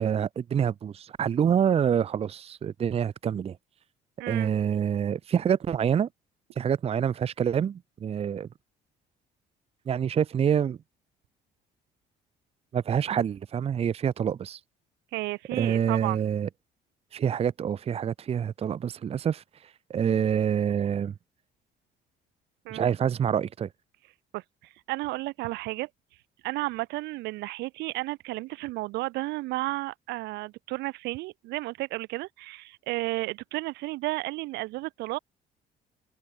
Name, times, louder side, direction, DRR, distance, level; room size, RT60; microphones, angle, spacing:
voice 1, 0.0-3.6 4.3-6.1 6.6-8.5 9.9-10.8 12.7-14.6 15.5-16.5 17.1-21.1 22.7-23.7, right 8 dB, 35° right, 0.7 m, -26 dB
voice 2, 4.2-4.5 15.1-16.3 22.6-22.9 24.3-25.9 26.4-35.2, right 20 dB, 90° right, 2.7 m, -33 dB
open air
cardioid pair, 110°, 17 cm